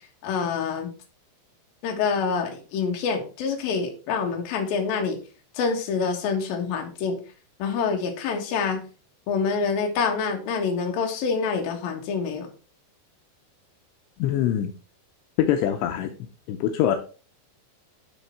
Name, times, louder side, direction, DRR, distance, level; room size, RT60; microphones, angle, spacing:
voice 1, 0.2-0.9 1.8-5.2 5.5-7.2 7.6-8.8 9.3-12.5, left 5 dB, 65° left, 2 dB, 2.7 m, -26 dB
voice 2, 14.2-14.7 15.4-16.1 16.5-17.0, left 10 dB, 85° left, 5 dB, 2.6 m, -23 dB
10.0 x 3.7 x 4.2 m, 0.36 s
omnidirectional pair, 5.5 m